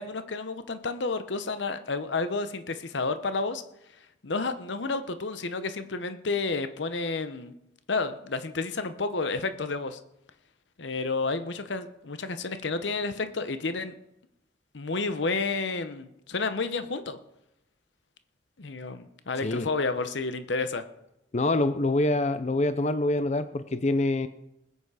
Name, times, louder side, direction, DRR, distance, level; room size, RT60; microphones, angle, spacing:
voice 1, 0.0-3.6 4.2-7.5 7.9-10.0 10.8-13.9 14.7-17.2 18.6-20.8, left 3 dB, 75° left, 10 dB, 0.9 m, -30 dB
voice 2, 21.3-24.3, left 2 dB, 40° left, 12 dB, 0.5 m, -25 dB
20.0 x 8.3 x 4.9 m, 0.86 s
head